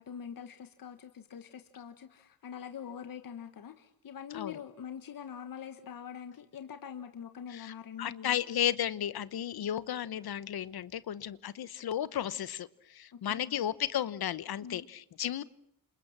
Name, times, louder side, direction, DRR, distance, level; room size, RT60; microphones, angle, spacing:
voice 1, 0.0-8.4 13.2-13.5 14.6-14.9, left 8 dB, 65° left, 8 dB, 1.6 m, -44 dB
voice 2, 7.5-15.4, left 10 dB, 80° left, 16 dB, 1.1 m, -34 dB
29.0 x 27.0 x 7.4 m, 0.71 s
wide cardioid pair, 135°, 37 cm